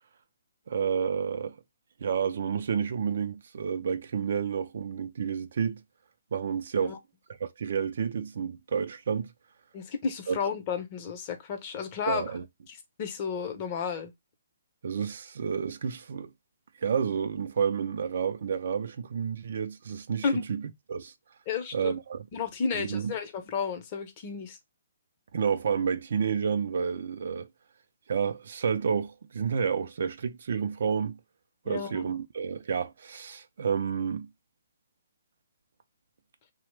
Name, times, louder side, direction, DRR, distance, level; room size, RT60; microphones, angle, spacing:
voice 1, 0.7-1.5 2.0-5.8 6.3-7.0 7.4-9.3 10.3-10.4 12.1-12.4 14.8-16.3 16.8-21.1 21.7-22.3 22.7-23.1 25.3-27.5 28.1-31.2 31.7-34.3, right 6 dB, 60° right, 0.4 m, -30 dB
voice 2, 9.7-12.3 12.7-14.1 20.2-20.4 21.5-21.9 22.3-24.6 31.7-32.1, left 6 dB, 30° left, 0.6 m, -32 dB
2.8 x 2.0 x 3.1 m
hypercardioid pair, 155°, 0 cm